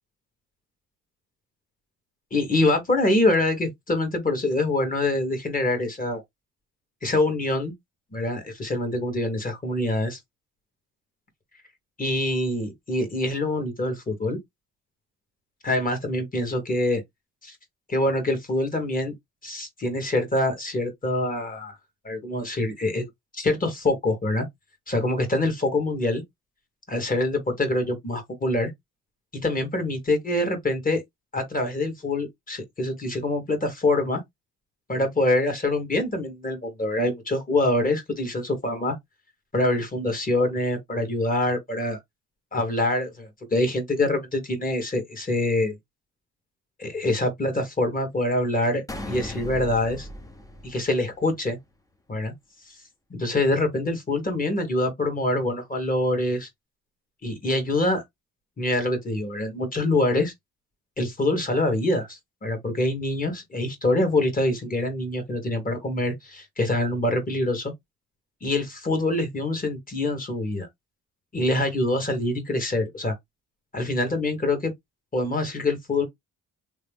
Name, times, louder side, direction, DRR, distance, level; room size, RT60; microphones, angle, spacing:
voice 1, 2.3-6.2 7.0-7.7 8.1-10.2 12.0-14.4 15.6-17.0 17.4-17.5 17.9-19.1 19.4-21.8 22.0-23.1 23.3-24.5 24.9-26.2 26.9-28.7 29.3-31.0 31.3-34.2 34.9-39.0 39.5-42.0 42.5-45.8 46.8-50.1 50.6-51.6 52.1-52.3 52.7-52.8 53.1-56.5 57.2-58.0 58.6-60.3 61.0-67.7 68.4-70.7 71.3-73.1 73.7-74.7 75.1-76.0, left 2 dB, 30° left, 1.6 m, -25 dB
sound 1, 48.9-51.5, left 1 dB, 10° left, 0.7 m, -37 dB
3.1 x 2.2 x 3.5 m
cardioid pair, 90°, 30 cm